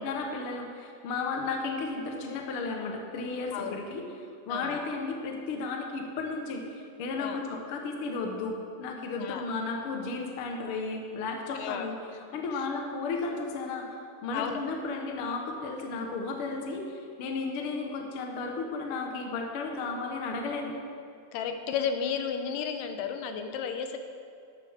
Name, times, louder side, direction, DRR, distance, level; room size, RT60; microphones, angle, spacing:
voice 1, 0.0-4.0 4.5-12.0 12.3-20.7, left 3 dB, 60° left, 2 dB, 1.5 m, -34 dB
voice 2, 11.5-11.9 14.3-14.6 21.3-24.0, left 7 dB, 85° left, 6 dB, 2.4 m, -33 dB
13.0 x 11.5 x 3.6 m, 2.4 s
omnidirectional pair, 3.8 m